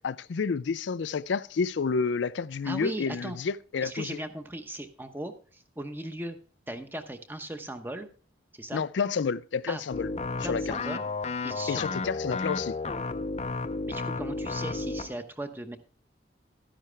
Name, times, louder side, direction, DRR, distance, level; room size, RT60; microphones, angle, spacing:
voice 1, 0.0-4.2 8.7-10.1 10.4-10.8 11.7-12.8, left 5 dB, 85° left, 0.4 m, -30 dB
voice 2, 2.6-3.4 3.8-6.4 6.7-8.1 8.5-8.8 9.7-9.8 10.4-11.1 11.4-11.8 13.9-15.8, right 1 dB, 10° right, 0.9 m, -38 dB
sound 1, 9.9-15.2, left 3 dB, 35° left, 0.5 m, -32 dB
12.5 x 10.0 x 3.3 m
head